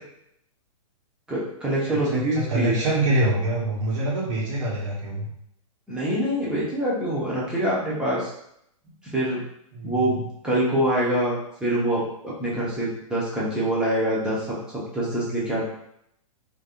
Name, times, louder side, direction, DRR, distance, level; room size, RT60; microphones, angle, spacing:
voice 1, 1.3-2.8 5.9-8.3 9.1-9.4 9.8-15.6, right 1 dB, 5° right, -7 dB, 1.1 m, -25 dB
voice 2, 1.9-5.3 9.7-10.2, right 1 dB, 60° right, -4 dB, 1.4 m, -25 dB
3.3 x 2.8 x 2.5 m, 0.74 s
hypercardioid pair, 135°, 18 cm